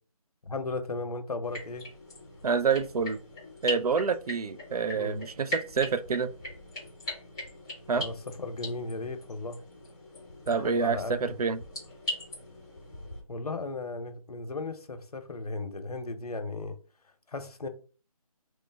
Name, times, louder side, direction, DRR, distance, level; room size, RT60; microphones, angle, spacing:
voice 1, 0.4-1.9 4.9-5.2 7.9-9.6 10.5-11.3 13.3-16.7 17.3-17.7, left 3 dB, 80° left, 0.7 m, -36 dB
sound 1, 1.4-13.2, left 1 dB, 10° left, 0.6 m, -40 dB
voice 2, 2.4-3.2 3.6-6.3 7.9-8.0 10.5-11.6, right 5 dB, 80° right, 0.4 m, -27 dB
3.1 x 2.1 x 3.3 m
figure-of-eight pair, 165°, 19 cm